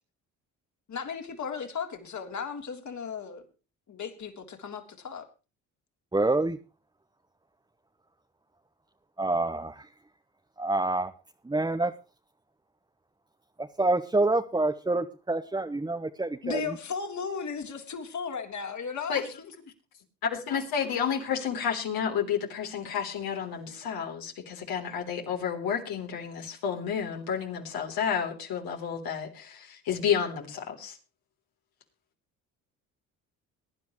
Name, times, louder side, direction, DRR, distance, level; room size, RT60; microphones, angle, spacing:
voice 1, 0.9-3.4 3.9-5.3 16.4-19.5, left 5 dB, 50° left, 3.4 m, -36 dB
voice 2, 6.1-6.6 9.2-9.9 10.6-11.1 11.4-11.9 13.6-16.7, right 2 dB, 10° right, 1.1 m, -27 dB
voice 3, 20.3-31.0, left 7 dB, 70° left, 3.6 m, -31 dB
22.5 x 10.5 x 3.2 m
supercardioid pair, 60°, 37 cm